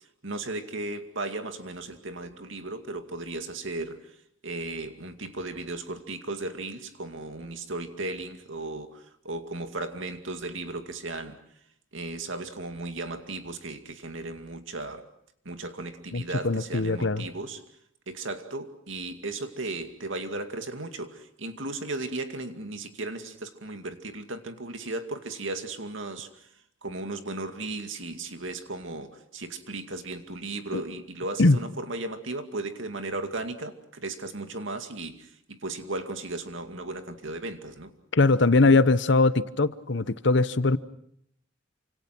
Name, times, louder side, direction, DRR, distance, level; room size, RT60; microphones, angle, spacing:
voice 1, 0.2-4.0 4.4-11.4 11.9-15.1 15.4-17.6 18.1-26.3 26.8-37.9, right 2 dB, 75° right, 7 dB, 2.3 m, -36 dB
voice 2, 16.1-17.2 30.7-30.8 31.4-31.6 38.1-40.8, left 3 dB, 60° left, 15 dB, 0.9 m, -21 dB
28.5 x 26.0 x 6.0 m, 0.71 s
head